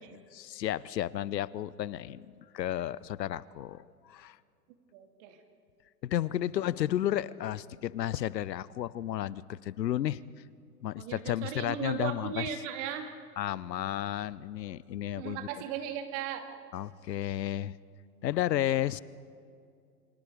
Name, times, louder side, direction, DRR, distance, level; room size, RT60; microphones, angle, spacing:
voice 1, 0.0-4.4 6.0-10.2 10.8-12.5 13.4-15.5 16.7-17.8 18.2-19.0, left 12 dB, 80° left, 20 dB, 0.8 m, -32 dB
voice 2, 4.9-5.4 11.0-13.1 15.2-16.5, right 9 dB, 45° right, 5 dB, 2.9 m, -37 dB
29.0 x 23.5 x 5.0 m, 2.3 s
hypercardioid pair, 125°, 49 cm